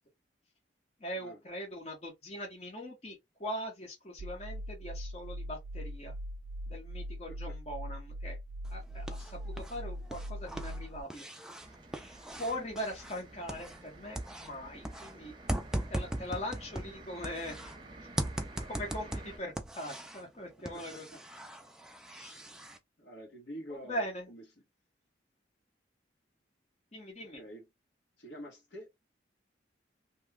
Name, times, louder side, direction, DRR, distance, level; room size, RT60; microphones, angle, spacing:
voice 1, 1.0-6.1 6.7-8.4 8.7-11.4 12.4-15.3 15.9-17.6 18.6-21.1 22.1-22.5 23.7-24.3 26.9-27.4, equal, 35° left, 0.9 m, -41 dB
sound 1, 4.2-11.0, equal, 65° right, 0.5 m, -41 dB
sound 2, 8.6-9.8 10.0-13.9 14.1-17.8 18.2-20.3 20.7-22.8, right 1 dB, 5° right, 0.3 m, -39 dB
sound 3, 11.6-19.4, right 2 dB, 25° right, 0.8 m, -51 dB
voice 2, 20.7-21.2 23.0-24.4 27.3-27.7 28.2-28.9, equal, 80° left, 1.4 m, -47 dB
2.9 x 2.3 x 3.4 m
head